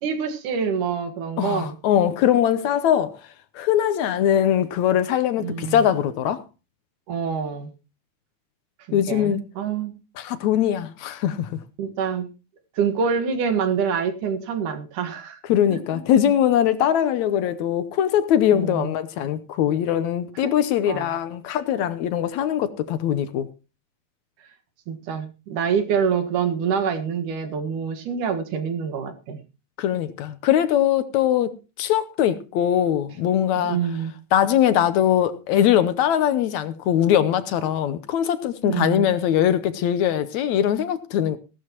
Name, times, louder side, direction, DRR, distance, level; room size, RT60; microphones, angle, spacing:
voice 1, 0.0-1.8 5.4-5.9 7.1-7.7 8.9-9.9 11.8-12.3 12.8-15.4 15.7-15.8 18.5-18.9 20.4-20.5 20.9-21.1 24.9-29.4 33.5-34.1 38.6-39.1, right 6 dB, 75° right, 3.1 m, -26 dB
voice 2, 1.4-3.1 3.6-6.4 8.9-9.4 10.2-11.6 15.5-23.5 29.8-33.8 34.3-41.4, left 10 dB, 70° left, 2.0 m, -21 dB
17.0 x 12.0 x 3.0 m
omnidirectional pair, 3.6 m